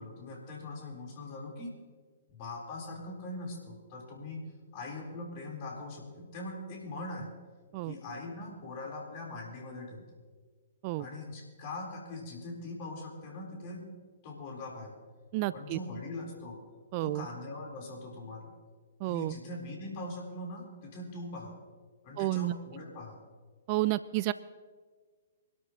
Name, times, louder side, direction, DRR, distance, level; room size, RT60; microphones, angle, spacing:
voice 1, 0.0-1.8 2.3-4.4 4.7-7.3 7.8-10.2 11.0-13.9 14.2-15.0 15.5-16.6 17.0-18.5 19.0-21.6 22.0-23.2, left 2 dB, 40° left, -1 dB, 3.9 m, -41 dB
voice 2, 15.3-15.8 16.9-17.3 19.0-19.3 22.2-22.5 23.7-24.3, right 18 dB, 35° right, 17 dB, 0.3 m, -30 dB
24.5 x 12.5 x 3.0 m, 1.5 s
figure-of-eight pair, 120°, 0 cm